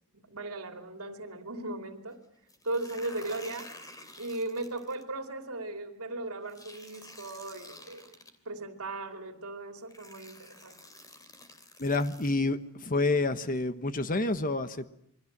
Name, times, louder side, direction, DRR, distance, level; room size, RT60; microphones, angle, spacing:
voice 1, 0.1-2.2 2.6-3.7 4.2-8.1 8.4-10.8, right 2 dB, 75° right, 6 dB, 2.9 m, -37 dB
sound 1, 2.5-5.0 6.5-8.3 9.3-9.4 9.9-12.3, left 2 dB, 15° left, 2.9 m, -50 dB
voice 2, 11.8-14.9, left 2 dB, 40° left, 11 dB, 1.2 m, -28 dB
28.0 x 22.5 x 7.4 m, 0.71 s
head